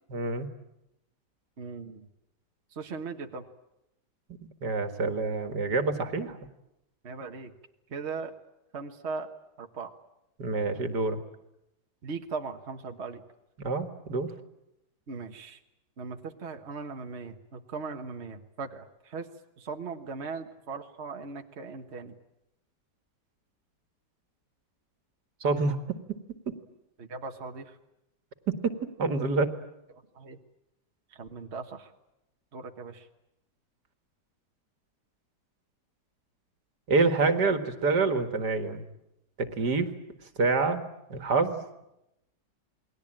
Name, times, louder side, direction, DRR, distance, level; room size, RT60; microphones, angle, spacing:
voice 1, 0.1-0.5 4.6-6.4 10.4-11.2 13.6-14.3 25.4-26.2 26.5-26.6 28.5-29.5 36.9-38.8 39.4-39.9 40.4-40.8 41.1-41.8, right 3 dB, 65° right, 8 dB, 2.4 m, -27 dB
voice 2, 1.6-2.1 2.7-3.5 7.0-7.5 7.9-8.3 8.7-9.3 9.6-9.9 12.0-13.2 15.1-15.6 16.0-19.3 19.6-22.2 27.0-27.7 30.1-30.4 31.2-31.9 32.5-33.1, right 4 dB, 40° right, 4 dB, 1.6 m, -38 dB
28.5 x 21.0 x 8.9 m, 0.87 s
omnidirectional pair, 1.9 m